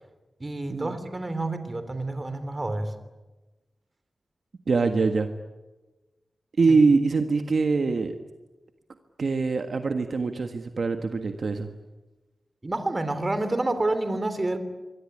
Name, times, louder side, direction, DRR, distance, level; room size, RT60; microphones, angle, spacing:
voice 1, 0.4-2.9 6.7-6.8 12.6-14.6, right 2 dB, 25° right, 10 dB, 3.3 m, -28 dB
voice 2, 4.7-5.3 6.6-8.1 9.2-11.7, right 4 dB, 60° right, 6 dB, 1.6 m, -23 dB
26.5 x 22.5 x 9.9 m, 1.1 s
wide cardioid pair, 145°, 0 cm